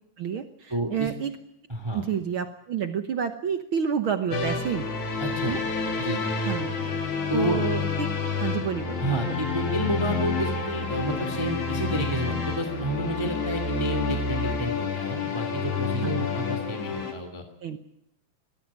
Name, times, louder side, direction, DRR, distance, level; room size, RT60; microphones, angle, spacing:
voice 1, 0.2-1.3 1.9-4.8 5.5-5.6 6.4-6.7 7.3-8.1 8.4-9.0 9.3-9.4 16.0-16.2 17.6-17.8, right 7 dB, 70° right, 8 dB, 1.2 m, -29 dB
voice 2, 0.7-1.1 1.7-2.0 5.2-5.6 6.0-6.3 7.3-7.6 9.0-17.4, right 1 dB, 10° right, 6 dB, 1.9 m, -30 dB
sound 1, 4.3-17.1, left 4 dB, 60° left, 4.1 m, -29 dB
21.5 x 15.0 x 9.8 m, 0.78 s
omnidirectional pair, 3.9 m